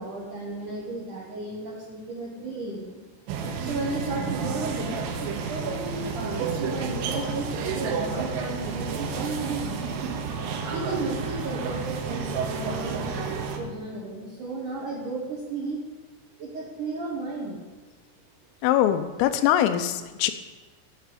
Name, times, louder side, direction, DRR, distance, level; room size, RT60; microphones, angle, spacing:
voice 1, 0.0-3.0 3.6-9.8 10.7-15.8 16.4-17.7, right 2 dB, 65° right, -4 dB, 2.0 m, -34 dB
sound 1, 3.3-13.6, right 5 dB, 80° right, 3.6 m, -31 dB
voice 2, 18.6-20.3, left 11 dB, 85° left, 10 dB, 3.4 m, -22 dB
9.3 x 7.7 x 8.3 m, 1.3 s
omnidirectional pair, 5.8 m